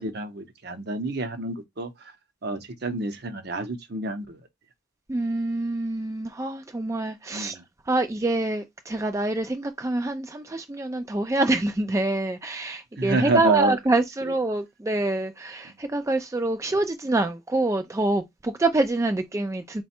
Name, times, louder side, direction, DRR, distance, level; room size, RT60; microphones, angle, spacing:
voice 1, 0.0-1.9 2.4-4.4 7.3-7.6 13.0-13.8, right 2 dB, 55° right, 0.7 m, -28 dB
voice 2, 5.1-7.6 7.9-19.8, right 2 dB, 15° right, 0.3 m, -26 dB
4.0 x 2.2 x 4.3 m
head